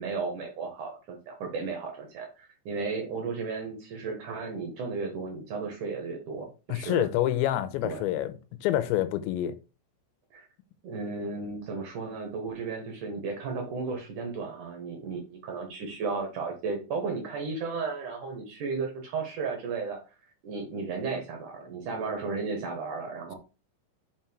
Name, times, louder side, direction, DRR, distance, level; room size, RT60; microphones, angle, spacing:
voice 1, 0.0-7.1 7.8-8.0 10.3-10.5 10.8-20.0 20.4-23.3, right 4 dB, 65° right, 2.2 m, -34 dB
voice 2, 6.7-8.3 8.6-9.5, left 12 dB, 90° left, 3.0 m, -27 dB
5.9 x 5.6 x 4.5 m
omnidirectional pair, 5.2 m